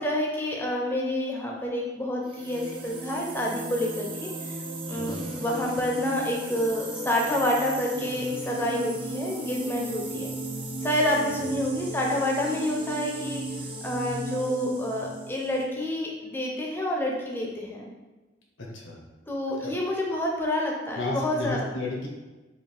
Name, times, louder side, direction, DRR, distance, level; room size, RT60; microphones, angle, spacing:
voice 1, 0.0-4.5 4.9-10.3 10.8-13.4 13.8-17.9 19.3-21.7, left 1 dB, 10° left, -2 dB, 0.6 m, -28 dB
sound 1, 2.2-15.7, right 2 dB, 25° right, 0.5 m, -36 dB
voice 2, 4.9-5.3 11.4-11.5 18.6-19.0 19.6-19.7 20.9-22.1, left 2 dB, 85° left, -1 dB, 1.1 m, -33 dB
4.9 x 2.8 x 3.4 m, 1.2 s
head